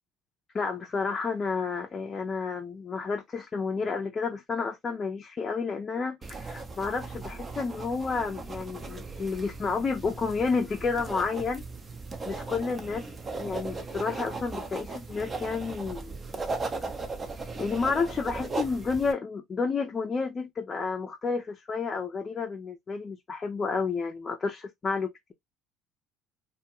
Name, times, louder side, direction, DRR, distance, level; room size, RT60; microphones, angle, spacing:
voice 1, 0.5-11.6 12.2-13.1 13.4-16.1 17.6-25.3, left 4 dB, 35° left, 0.5 m, -30 dB
sound 1, 6.2-19.1, right 3 dB, 30° right, 0.6 m, -37 dB
2.3 x 2.2 x 2.8 m
hypercardioid pair, 70°, 0 cm